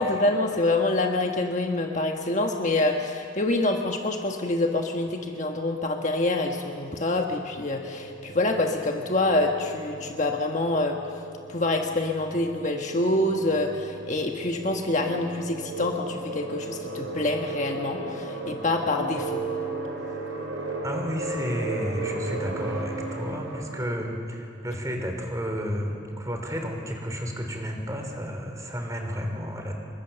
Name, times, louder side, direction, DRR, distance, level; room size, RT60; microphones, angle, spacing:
voice 1, 0.0-11.0 11.5-19.4, left 2 dB, 35° left, 2 dB, 1.4 m, -26 dB
sound 1, 7.5-24.0, right 2 dB, 65° right, 5.0 m, -36 dB
voice 2, 20.8-29.7, equal, 15° right, 3 dB, 3.5 m, -31 dB
28.0 x 23.0 x 6.9 m, 2.4 s
head